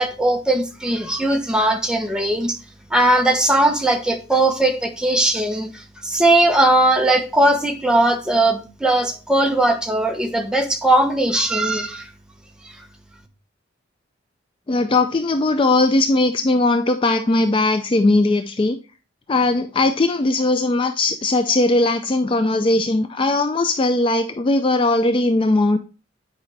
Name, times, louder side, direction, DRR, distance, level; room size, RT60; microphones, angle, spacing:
voice 1, 0.0-2.6 2.9-12.1, right 1 dB, 5° right, 0.9 m, -19 dB
voice 2, 14.7-18.8 19.3-25.8, left 2 dB, 25° left, 0.4 m, -19 dB
9.5 x 4.9 x 3.3 m
head